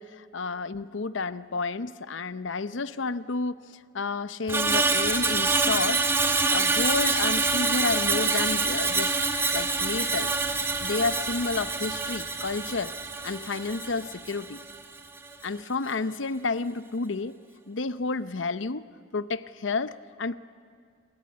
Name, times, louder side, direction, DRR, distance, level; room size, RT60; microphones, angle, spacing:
voice 1, 0.0-3.7 3.9-6.1 6.5-9.1 9.5-10.3 10.8-12.9 13.2-14.6 15.4-17.3 17.7-18.8 19.1-20.4, left 4 dB, 85° left, 14 dB, 0.8 m, -30 dB
Screech, 4.5-14.8 15.2-15.4, right 3 dB, 15° right, 1.7 m, -26 dB
29.0 x 20.5 x 9.5 m, 2.3 s
head